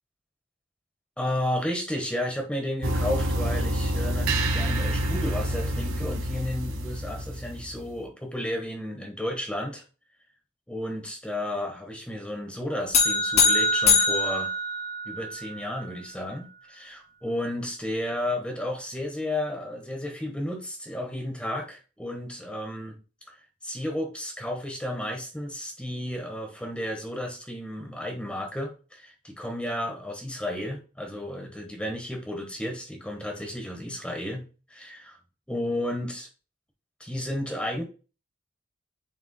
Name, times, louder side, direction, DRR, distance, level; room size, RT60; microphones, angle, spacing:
voice 1, 1.2-9.8 10.7-14.5 15.0-23.0 23.6-35.2 35.5-36.3 37.0-37.8, left 1 dB, 5° left, 2 dB, 1.4 m, -33 dB
sound 1, 2.8-7.9, right 1 dB, 75° right, 1.4 m, -27 dB
sound 2, 12.9-15.4, left 3 dB, 35° left, 2.0 m, -22 dB
9.8 x 4.7 x 2.2 m, 0.34 s
head